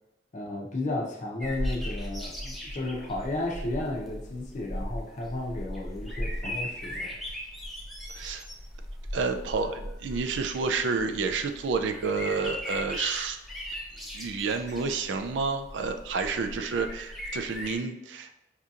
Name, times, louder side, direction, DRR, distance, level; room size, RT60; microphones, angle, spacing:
voice 1, 0.3-7.1, left 2 dB, 45° left, -1 dB, 0.7 m, -33 dB
sound 1, 1.4-17.8, equal, ahead, 0.5 m, -38 dB
voice 2, 8.1-8.5 9.1-13.4 14.1-18.3, right 4 dB, 80° right, 7 dB, 0.4 m, -30 dB
4.8 x 2.7 x 2.4 m, 0.93 s
head